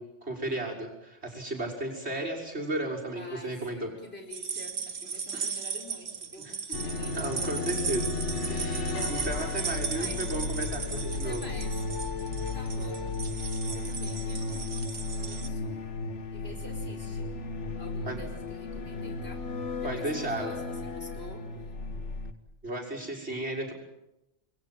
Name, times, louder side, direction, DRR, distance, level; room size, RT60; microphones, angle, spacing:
voice 1, 0.0-3.9 5.3-5.7 6.4-6.5 7.1-8.1 8.5-11.5 18.1-18.2 19.8-20.6 22.6-23.7, right 1 dB, 60° right, -1 dB, 6.3 m, -34 dB
voice 2, 3.2-7.2 9.5-9.6 9.9-10.2 11.1-11.7 12.5-15.8 16.3-17.3 17.8-19.5 19.8-20.6 20.9-21.5, left 1 dB, 55° left, 4 dB, 5.2 m, -47 dB
sound 1, 4.3-15.5, right 6 dB, 90° right, 1.9 m, -37 dB
sound 2, 6.7-22.3, left 3 dB, 70° left, 1.8 m, -34 dB
28.5 x 22.5 x 7.6 m, 0.92 s
omnidirectional pair, 1.2 m